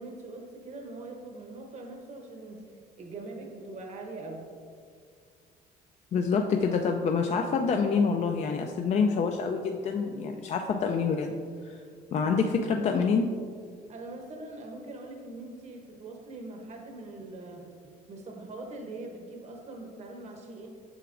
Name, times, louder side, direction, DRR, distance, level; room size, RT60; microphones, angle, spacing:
voice 1, 0.0-2.6 2.9-4.5 6.4-6.7 12.1-12.3 13.9-20.7, right 2 dB, 40° right, 2 dB, 0.8 m, -42 dB
voice 2, 6.1-11.4 11.6-11.7 12.1-13.3, left 5 dB, 40° left, 4 dB, 0.4 m, -26 dB
7.9 x 5.8 x 2.5 m, 2.1 s
cardioid pair, 110°, 17 cm